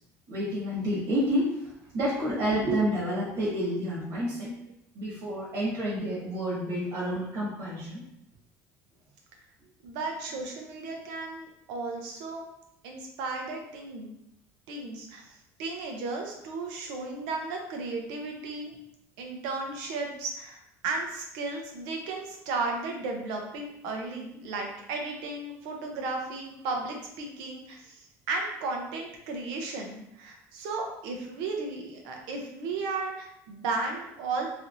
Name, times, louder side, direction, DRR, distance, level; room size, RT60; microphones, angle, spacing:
voice 1, 0.3-4.5 4.9-8.0, equal, 60° right, -7 dB, 1.5 m, -29 dB
voice 2, 9.8-12.5 12.8-14.1 14.7-18.7 19.2-28.0 28.3-34.5, right 3 dB, 80° right, 2 dB, 0.7 m, -34 dB
3.3 x 2.9 x 2.6 m, 0.80 s
cardioid pair, 150°, 7 cm